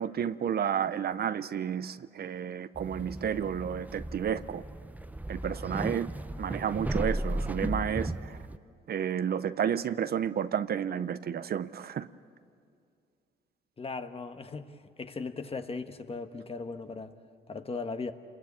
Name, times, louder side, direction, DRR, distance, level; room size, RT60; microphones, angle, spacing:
voice 1, 0.0-4.6 5.3-6.1 6.4-8.4 8.9-12.1, right 8 dB, 50° right, 13 dB, 0.7 m, -31 dB
sound 1, 2.8-8.6, right 1 dB, 10° right, 0.7 m, -35 dB
voice 2, 13.8-17.1 17.5-18.1, left 4 dB, 30° left, 8 dB, 1.4 m, -38 dB
28.0 x 21.0 x 8.6 m, 2.3 s
cardioid pair, 90°, 20 cm